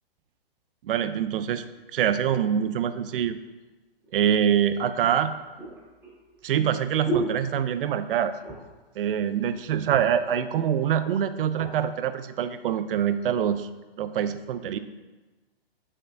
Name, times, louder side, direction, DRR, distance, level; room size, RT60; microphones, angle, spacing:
voice 1, 0.8-1.6 1.9-3.4 4.1-5.3 6.4-8.3 9.0-13.7 14.0-14.8, right 9 dB, 65° right, 12 dB, 0.6 m, -25 dB
sound 1, 4.0-4.1 5.0-8.1 8.4-8.9 9.2-9.3 9.6-10.3 11.0-11.8 12.4-12.6, right 1 dB, 10° right, 1.8 m, -35 dB
7.2 x 6.6 x 2.6 m, 1.2 s
hypercardioid pair, 140°, 30 cm